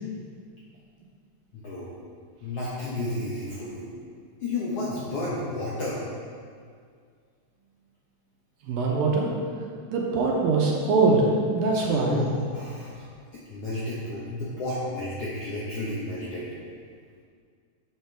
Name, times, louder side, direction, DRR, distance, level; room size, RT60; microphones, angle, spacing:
voice 1, 1.5-1.9 2.4-3.9 4.4-6.0 11.7-13.0 13.3-16.5, left 2 dB, 85° left, -7 dB, 1.3 m, -32 dB
voice 2, 8.6-9.3 9.9-12.2, right 3 dB, 70° right, -1 dB, 2.4 m, -23 dB
12.0 x 7.5 x 3.4 m, 2.1 s
omnidirectional pair, 4.7 m